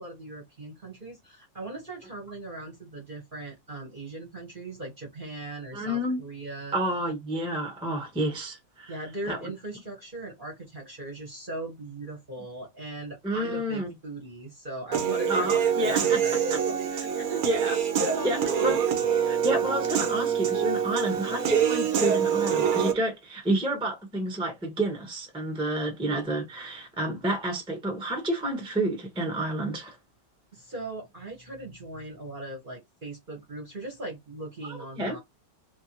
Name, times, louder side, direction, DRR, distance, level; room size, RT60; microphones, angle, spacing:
voice 1, 0.0-6.8 8.9-17.6 18.0-18.8 30.5-35.2, right 1 dB, 35° right, 1.0 m, -39 dB
voice 2, 5.7-6.2 6.7-9.0 9.3-9.5 13.2-13.9 15.3-16.2 16.5-16.6 17.4-17.8 18.2-18.8 19.2-30.0 34.6-35.2, right 1 dB, 5° right, 0.8 m, -29 dB
Human voice / Piano, 14.9-22.9, right 8 dB, 60° right, 1.1 m, -25 dB
3.3 x 2.7 x 2.8 m
omnidirectional pair, 2.0 m